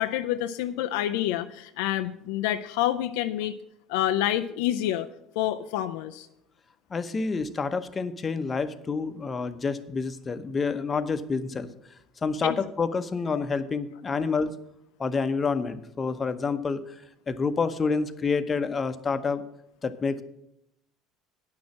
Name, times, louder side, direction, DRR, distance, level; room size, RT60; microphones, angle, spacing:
voice 1, 0.0-3.6 3.9-5.1 5.4-6.3 12.4-12.6, left 12 dB, 75° left, 8 dB, 0.4 m, -27 dB
voice 2, 6.9-11.7 12.2-14.6 15.0-16.9 17.3-19.4 19.8-20.2, left 4 dB, 30° left, 11 dB, 0.8 m, -28 dB
9.5 x 6.3 x 7.3 m, 0.81 s
hypercardioid pair, 70°, 0 cm